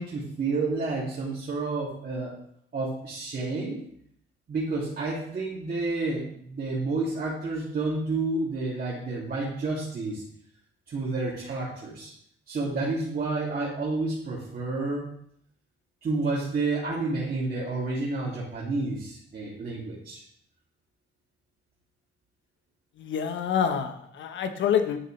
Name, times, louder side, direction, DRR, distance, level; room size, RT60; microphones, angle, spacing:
voice 1, 0.0-2.3 2.7-3.8 4.5-10.2 10.9-12.1 12.5-15.1 16.0-20.2, right 3 dB, 45° right, -7 dB, 2.7 m, -30 dB
voice 2, 23.0-25.0, left 7 dB, 70° left, 7 dB, 1.2 m, -27 dB
11.0 x 6.8 x 3.3 m, 0.68 s
cardioid pair, 90°, 20 cm